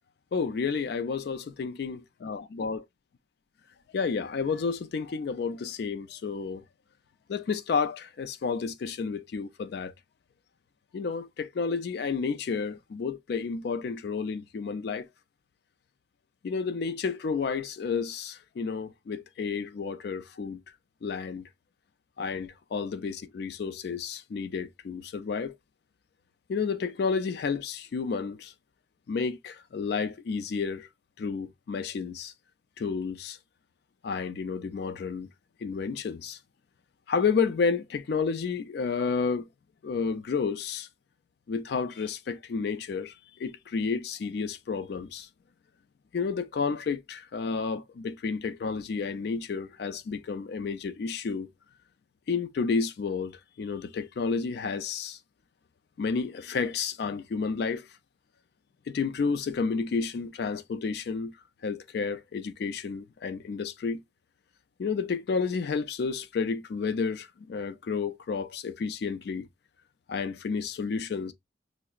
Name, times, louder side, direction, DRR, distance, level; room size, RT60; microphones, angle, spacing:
voice 1, 0.3-2.8 3.9-6.6 7.3-9.9 10.9-15.1 16.4-20.6 21.0-21.4 22.2-25.5 26.5-28.5 29.1-30.9 31.2-32.3 32.8-33.4 34.0-35.3 35.6-36.4 37.1-39.5 39.8-40.9 41.5-45.3 46.1-51.5 52.3-53.3 53.6-55.2 56.0-57.9 58.9-61.3 61.6-64.0 64.8-69.5 70.1-71.3, left 5 dB, 55° left, 0.3 m, -31 dB
5.6 x 2.0 x 2.3 m
head